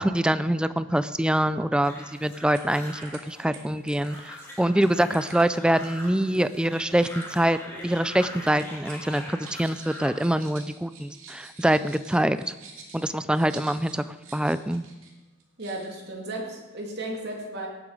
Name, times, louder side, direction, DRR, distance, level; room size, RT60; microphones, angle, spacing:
voice 1, 0.0-1.9 2.2-7.6 7.8-12.5 12.9-14.8, right 1 dB, 5° right, 13 dB, 0.3 m, -25 dB
sound 1, 1.8-10.2, left 1 dB, 10° left, 2.3 m, -42 dB
sound 2, 2.1-2.2 2.5-3.2 3.5-7.3 7.6-8.1 8.4-15.1 15.4-16.0, right 4 dB, 90° right, 2.3 m, -49 dB
sound 3, 4.0-4.4 5.8-6.2 7.2-7.9, right 2 dB, 70° right, 3.2 m, -53 dB
voice 2, 15.6-17.7, right 1 dB, 55° right, 0 dB, 2.5 m, -34 dB
17.5 x 7.7 x 4.9 m, 1.1 s
head